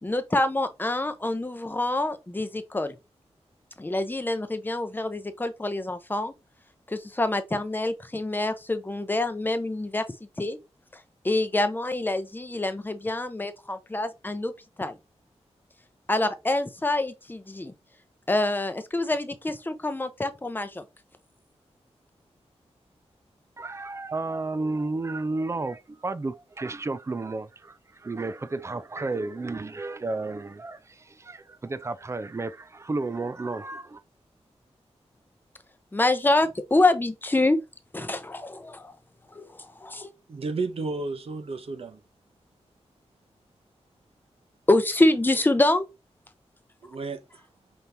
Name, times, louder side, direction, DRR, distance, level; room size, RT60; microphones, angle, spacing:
voice 1, 0.0-2.9 3.8-6.3 6.9-10.0 10.4-10.6 11.2-14.5 14.8-15.0 16.1-17.7 18.3-20.8 35.9-37.6 37.9-38.9 39.3-40.1 44.7-45.9, left 2 dB, 15° left, 0.6 m, -26 dB
voice 2, 23.6-34.0, right 3 dB, 25° right, 0.4 m, -32 dB
voice 3, 40.3-42.0 46.8-47.4, right 3 dB, 60° right, 0.8 m, -32 dB
5.3 x 2.9 x 3.4 m
wide cardioid pair, 110°, 11 cm